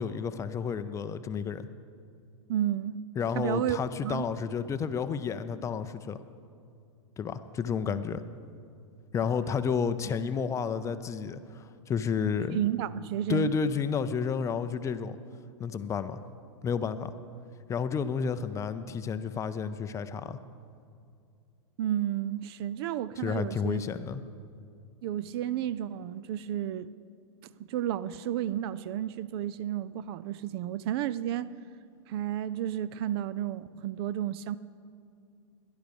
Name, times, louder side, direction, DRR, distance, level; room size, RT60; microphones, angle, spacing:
voice 1, 0.0-1.7 3.2-6.2 7.2-8.2 9.1-12.6 13.3-15.2 15.6-16.2 16.6-17.1 17.7-20.4 23.2-24.2, left 6 dB, 20° left, 0.5 m, -31 dB
voice 2, 2.5-3.0 3.3-4.3 12.5-13.5 21.8-23.8 25.0-26.9 27.7-31.5 32.1-34.6, right 11 dB, 50° right, 0.4 m, -32 dB
16.5 x 11.0 x 5.2 m
hypercardioid pair, 125°, 16 cm